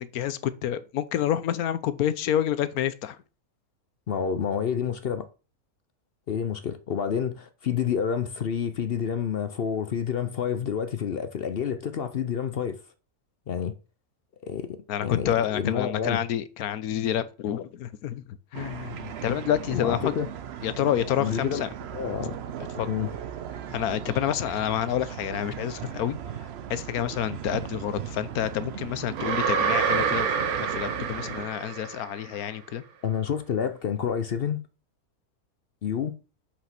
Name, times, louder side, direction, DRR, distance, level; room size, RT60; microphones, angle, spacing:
voice 1, 0.0-3.2 14.9-20.1 20.6-21.7 22.8-22.9 23.7-30.3 30.7-32.8, left 10 dB, 75° left, 1.2 m, -28 dB
voice 2, 4.1-5.3 6.3-12.8 13.5-13.7 14.4-16.2 19.7-20.3 21.2-21.6 21.9-22.4 22.9-23.1 33.0-34.6 35.8-36.1, left 7 dB, 55° left, 0.6 m, -29 dB
sound 1, 18.5-31.4, right 9 dB, 55° right, 0.7 m, -38 dB
sound 2, 29.2-32.3, right 6 dB, 75° right, 1.4 m, -27 dB
5.6 x 5.1 x 5.8 m
omnidirectional pair, 1.6 m